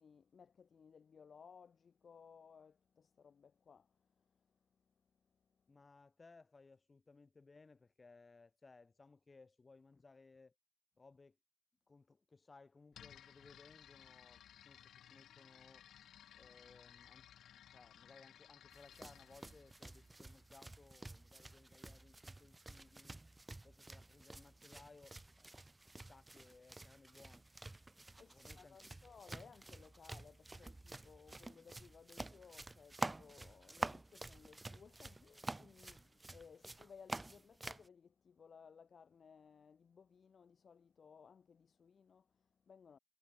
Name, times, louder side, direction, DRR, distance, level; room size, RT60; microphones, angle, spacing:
voice 1, 0.0-4.7 5.5-5.7 27.9-43.0, left 6 dB, 45° left, 1.4 m, -61 dB
voice 2, 5.7-10.5 11.0-11.4 11.9-14.8 15.1-15.9 16.3-23.2 23.6-25.5 25.9-27.5 28.1-29.0, left 3 dB, 25° left, 7.7 m, -63 dB
sound 1, 12.9-20.7, left 10 dB, 70° left, 1.3 m, -60 dB
sound 2, 18.7-37.9, right 2 dB, 15° right, 1.3 m, -49 dB
cardioid pair, 90°, 0 cm